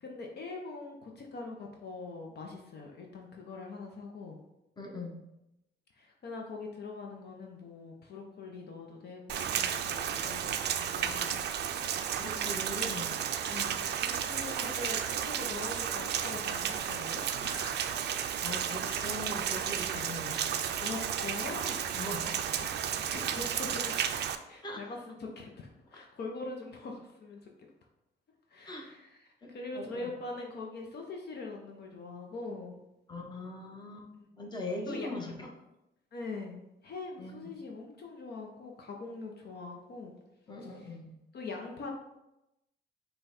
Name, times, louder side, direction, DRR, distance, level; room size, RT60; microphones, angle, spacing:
voice 1, 0.0-4.4 6.0-11.5 13.5-18.0 18.4-18.9 20.8-22.0 22.9-24.0 24.5-27.4 28.5-29.2 29.5-32.8 34.1-34.2 34.9-35.1 36.1-40.1 40.6-41.0 41.3-41.9, left 3 dB, 55° left, 1 dB, 0.7 m, -43 dB
voice 2, 4.8-5.2 11.0-11.3 11.8-13.2 18.4-20.5 22.0-22.7 24.6-24.9 28.6-28.9 29.4-30.1 33.1-34.1 34.3-35.5 37.2-37.5 40.5-41.1, left 2 dB, 20° left, 0 dB, 1.0 m, -41 dB
Rain, 9.3-24.4, right 9 dB, 60° right, 0.4 m, -33 dB
5.4 x 2.3 x 4.1 m, 0.91 s
cardioid pair, 90°, 20 cm